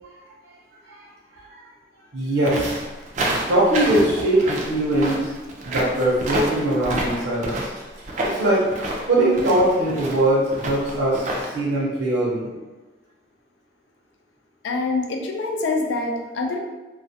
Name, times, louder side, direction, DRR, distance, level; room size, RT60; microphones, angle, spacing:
voice 1, 2.1-2.8 3.5-5.3 5.6-7.8 8.2-8.6 9.1-12.5, right 1 dB, 85° right, -6 dB, 0.7 m, -21 dB
sound 1, 2.4-11.5, right 1 dB, 40° right, 0.4 m, -28 dB
voice 2, 14.6-16.6, left 3 dB, 85° left, 2 dB, 0.4 m, -25 dB
2.3 x 2.1 x 2.6 m, 1.2 s
head